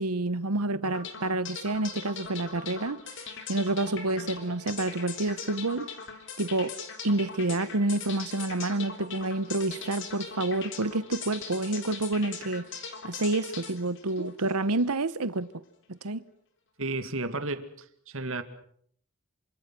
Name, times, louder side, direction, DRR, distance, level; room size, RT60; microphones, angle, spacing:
voice 1, 0.0-3.0 3.5-5.9 6.4-6.7 7.0-12.6 13.0-15.5 16.0-16.2, right 2 dB, 85° right, 1.1 m, -28 dB
sound 1, 0.8-14.9, left 6 dB, 55° left, 3.6 m, -41 dB
voice 2, 16.8-18.4, right 2 dB, 60° right, 2.2 m, -33 dB
27.5 x 26.0 x 6.1 m
head